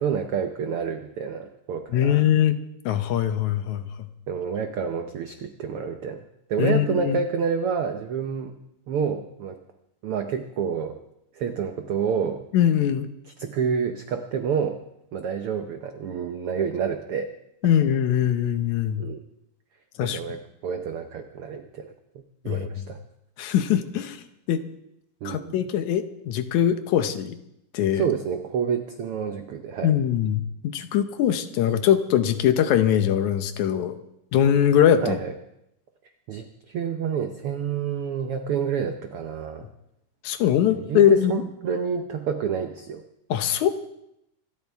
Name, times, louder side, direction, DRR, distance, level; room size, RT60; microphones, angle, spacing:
voice 1, 0.0-2.3 4.3-6.2 6.5-8.6 8.9-9.6 10.0-11.0 11.3-12.5 13.4-14.8 15.1-17.3 19.0-19.2 20.0-23.0 25.2-25.7 27.9-30.0 35.0-35.3 36.3-39.7 40.7-43.0, right 6 dB, 80° right, 7 dB, 1.2 m, -28 dB
voice 2, 1.9-2.6 2.9-3.9 6.6-7.2 12.5-13.1 17.6-19.1 20.0-20.2 22.5-22.7 23.4-24.2 24.5-24.6 25.2-27.4 27.7-28.0 29.8-34.0 34.3-35.2 40.2-41.4 43.3-43.7, left 10 dB, 75° left, 10 dB, 2.1 m, -22 dB
27.0 x 13.0 x 3.5 m, 0.81 s
omnidirectional pair, 3.6 m